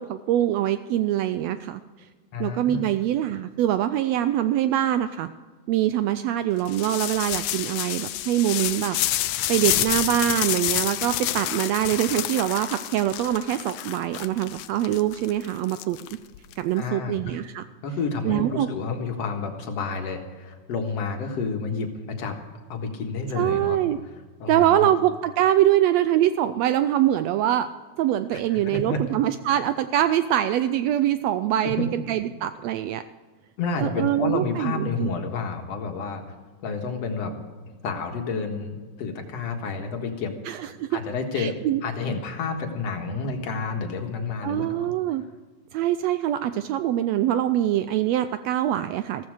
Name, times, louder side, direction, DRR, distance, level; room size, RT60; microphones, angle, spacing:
voice 1, 0.0-1.8 2.4-5.3 5.7-9.0 9.5-16.0 16.6-17.6 18.2-18.7 23.3-24.0 24.5-27.7 28.0-33.0 33.8-35.1 40.5-41.0 41.4-41.8 44.4-45.2 45.7-49.3, right 12 dB, 85° right, 11 dB, 1.5 m, -24 dB
voice 2, 2.3-2.9 16.7-17.4 17.8-22.4 22.7-23.8 24.4-24.9 28.3-29.0 31.6-31.9 33.6-36.2 36.6-37.4 37.8-40.3 40.9-44.9, left 4 dB, 60° left, 4 dB, 2.5 m, -30 dB
sound 1, 6.7-16.5, left 14 dB, 80° left, 2.0 m, -28 dB
15.5 x 14.5 x 4.9 m, 1.4 s
omnidirectional pair, 3.5 m